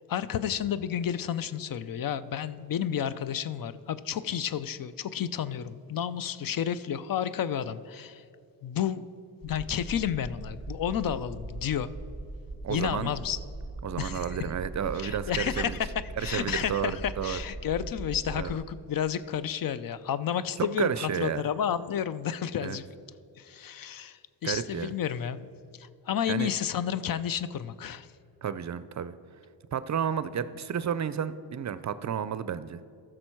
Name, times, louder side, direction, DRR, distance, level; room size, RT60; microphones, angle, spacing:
voice 1, 0.1-8.2 8.6-9.1 9.4-11.9 12.7-13.4 14.0-14.4 14.9-15.9 16.2-22.8 23.4-25.5 25.8-28.1, left 9 dB, 55° left, 15 dB, 0.5 m, -31 dB
sound 1, 9.4-18.6, right 2 dB, 5° right, 1.6 m, -40 dB
voice 2, 12.6-13.1 13.8-15.8 16.2-17.4 18.3-18.6 20.6-21.5 22.6-22.8 24.4-24.9 26.3-26.5 28.4-29.2 29.7-32.8, right 8 dB, 45° right, 14 dB, 0.5 m, -31 dB
14.0 x 6.3 x 4.5 m, 2.5 s
cardioid pair, 80°, 40 cm